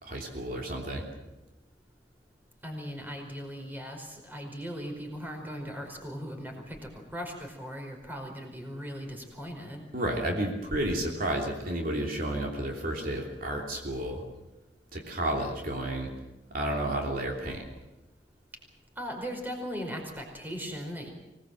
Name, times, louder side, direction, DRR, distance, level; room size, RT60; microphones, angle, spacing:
voice 1, 0.0-1.0 9.9-14.2 14.9-16.1 16.5-17.6, right 1 dB, 50° right, 0 dB, 3.1 m, -31 dB
voice 2, 2.6-9.8 19.0-21.1, equal, 10° right, 3 dB, 4.9 m, -38 dB
25.0 x 19.5 x 7.8 m, 1.0 s
head